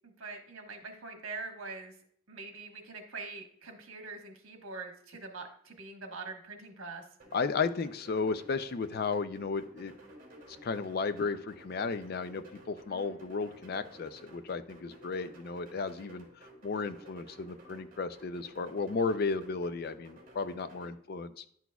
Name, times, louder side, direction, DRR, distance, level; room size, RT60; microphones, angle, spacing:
voice 1, 0.0-1.9 2.3-7.0 12.9-13.3, right 4 dB, 75° right, 3 dB, 1.3 m, -44 dB
sound 1, 7.2-20.9, equal, 40° right, 2.2 m, -54 dB
voice 2, 7.3-9.9 10.6-16.2 16.6-21.4, left 4 dB, 45° left, 12 dB, 0.4 m, -34 dB
10.5 x 6.0 x 2.3 m, 0.64 s
head